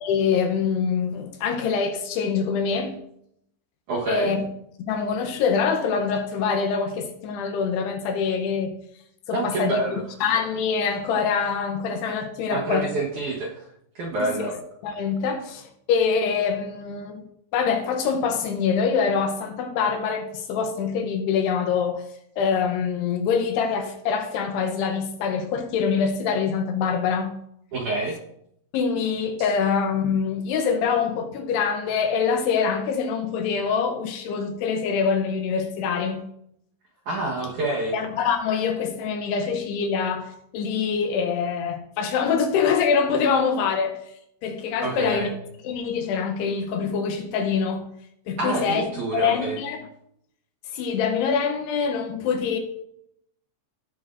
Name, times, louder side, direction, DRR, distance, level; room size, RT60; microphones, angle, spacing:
voice 1, 0.0-3.0 4.0-4.4 4.8-8.7 9.3-12.9 14.2-14.6 14.8-17.2 17.5-22.0 22.4-27.3 28.7-36.2 37.9-44.0 44.4-45.3 45.6-47.9 48.3-48.9 49.1-49.8 50.7-52.6, left 6 dB, 75° left, 2.7 m, -25 dB
voice 2, 3.9-4.3 9.3-10.0 12.5-13.7 14.0-14.5 27.7-28.2 37.1-38.0 44.8-45.3 48.4-49.6, right 2 dB, 65° right, 2.0 m, -27 dB
17.0 x 7.6 x 2.6 m
omnidirectional pair, 5.2 m